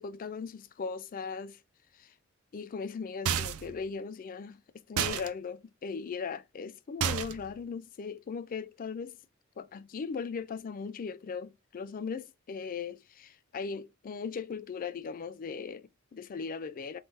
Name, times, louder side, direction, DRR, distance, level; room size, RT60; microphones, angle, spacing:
voice 1, 0.0-1.6 1.9-2.2 2.5-9.2 9.6-17.0, left 5 dB, 40° left, 0.4 m, -38 dB
sound 1, 3.3-3.8 5.0-5.3 7.0-7.5, right 8 dB, 80° right, 0.5 m, -30 dB
3.7 x 3.0 x 4.0 m
head